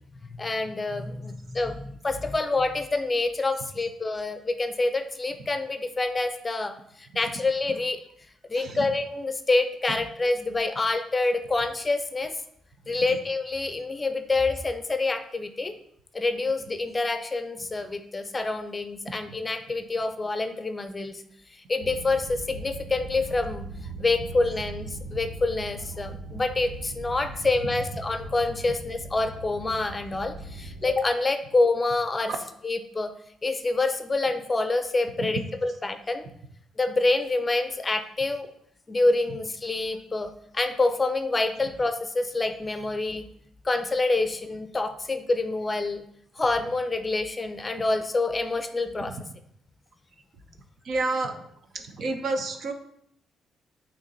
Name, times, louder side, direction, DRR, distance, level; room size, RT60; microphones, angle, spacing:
voice 1, 0.1-8.0 8.5-12.3 12.9-15.7 16.1-21.2 21.7-23.7 24.0-32.3 32.6-33.1 33.4-36.3 36.8-38.5 38.9-43.3 43.6-46.0 46.4-49.1, left 3 dB, 25° left, 8 dB, 0.6 m, -27 dB
sound 1, 21.8-30.9, right 2 dB, 90° right, 2.0 m, -39 dB
voice 2, 50.8-51.3 51.7-52.7, right 3 dB, 60° right, 5 dB, 0.9 m, -29 dB
8.3 x 3.0 x 3.9 m, 0.70 s
cardioid pair, 90°, 0 cm